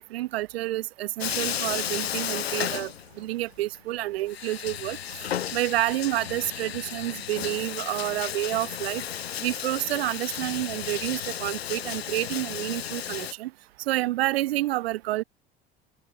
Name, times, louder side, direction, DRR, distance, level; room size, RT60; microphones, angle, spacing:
voice 1, 0.0-5.0 5.5-9.0 9.4-13.5 13.9-15.2, right 16 dB, 75° right, 0.7 m, -29 dB
Bathtub (filling or washing), 1.2-3.5 3.7-3.8 4.3-13.3, left 10 dB, 85° left, 1.2 m, -33 dB
open air
hypercardioid pair, 65°, 30 cm